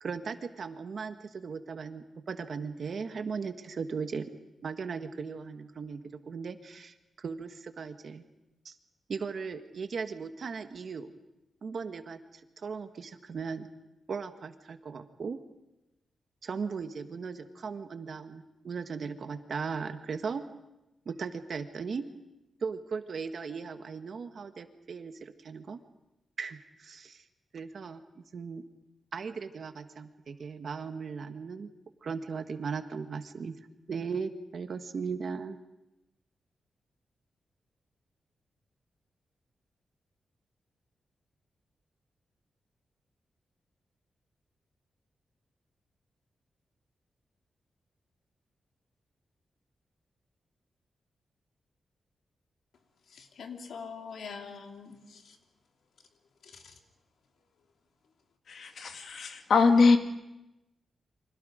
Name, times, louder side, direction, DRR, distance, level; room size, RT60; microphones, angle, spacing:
voice 1, 0.0-4.3 4.6-8.2 8.6-8.8 9.1-11.1 11.6-13.7 14.1-15.4 16.4-20.4 21.0-22.1 22.6-25.8 26.4-27.2 27.5-28.6 29.1-31.7 32.0-35.6, right 5 dB, 50° right, 8 dB, 1.4 m, -37 dB
voice 2, 53.1-55.4 56.4-56.7, left 5 dB, 75° left, 3 dB, 2.9 m, -44 dB
voice 3, 58.5-60.0, left 4 dB, 60° left, 6 dB, 2.0 m, -23 dB
30.0 x 25.5 x 5.1 m, 0.95 s
wide cardioid pair, 160°, 0 cm